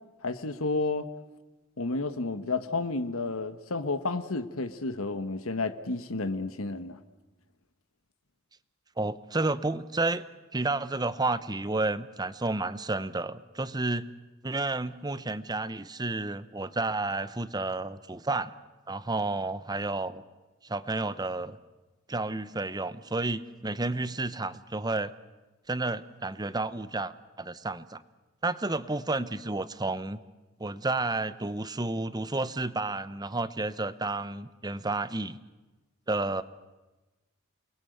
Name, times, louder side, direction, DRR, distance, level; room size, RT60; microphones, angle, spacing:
voice 1, 0.2-1.1 1.8-7.0, left 3 dB, 85° left, 10 dB, 1.4 m, -31 dB
voice 2, 9.0-10.2 10.5-14.1 14.4-18.5 18.9-20.2 20.6-21.6 22.1-25.1 25.7-28.0 28.4-30.2 30.6-35.4 36.1-36.4, right 2 dB, 20° right, 14 dB, 0.9 m, -31 dB
29.0 x 21.0 x 8.0 m, 1.1 s
head